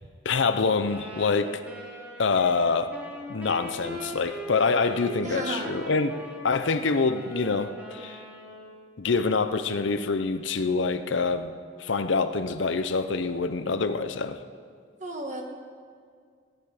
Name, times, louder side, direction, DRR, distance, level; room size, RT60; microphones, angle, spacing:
voice 1, 0.2-1.6 2.2-2.9 3.3-6.2 6.4-8.2 9.0-11.5 11.8-14.4, left 4 dB, 70° left, 10 dB, 0.6 m, -25 dB
sound 1, 0.8-8.8, equal, 5° right, 1.5 m, -40 dB
voice 2, 5.2-5.7 15.0-15.4, right 2 dB, 35° right, 2 dB, 1.5 m, -33 dB
17.0 x 11.0 x 5.0 m, 2.1 s
head